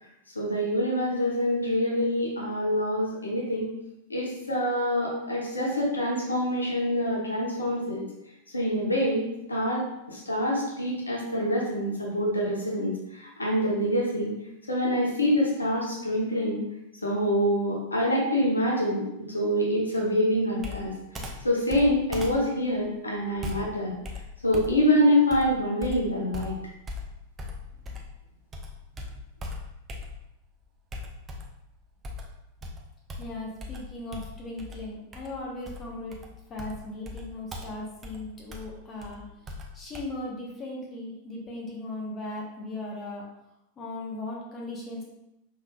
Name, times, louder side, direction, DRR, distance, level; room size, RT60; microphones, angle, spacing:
voice 1, 0.3-3.7 4.1-8.0 8.5-9.8 10.1-14.3 14.7-16.6 17.0-20.9 21.4-23.9 24.4-26.6, equal, 80° left, -3 dB, 1.0 m, -26 dB
Computer keyboard, 20.6-28.2 28.5-30.4 30.9-31.6 32.0-40.0, left 2 dB, 20° right, 0.7 m, -39 dB
voice 2, 33.2-36.2 36.5-39.2 39.7-43.2 43.8-45.1, left 2 dB, 25° left, -3 dB, 1.0 m, -37 dB
5.4 x 3.4 x 2.3 m, 0.86 s
figure-of-eight pair, 90°, 0 cm